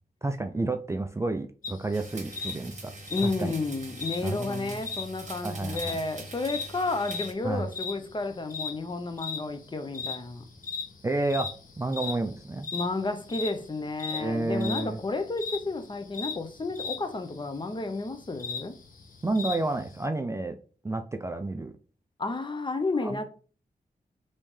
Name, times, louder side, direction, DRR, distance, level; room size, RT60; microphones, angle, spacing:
voice 1, 0.2-2.9 3.2-3.5 4.2-4.8 5.4-6.0 7.4-7.7 11.0-11.5 11.8-12.7 14.1-15.0 19.2-20.6 20.8-21.7 23.0-23.2, right 2 dB, 15° right, 0.3 m, -30 dB
sound 1, 1.6-20.0, left 4 dB, 55° left, 0.8 m, -39 dB
sound 2, 1.9-7.3, right 2 dB, 45° right, 0.9 m, -44 dB
voice 2, 3.1-10.4 12.7-18.7 22.2-23.2, left 3 dB, 30° left, 0.6 m, -31 dB
3.2 x 2.7 x 3.1 m
cardioid pair, 50°, 17 cm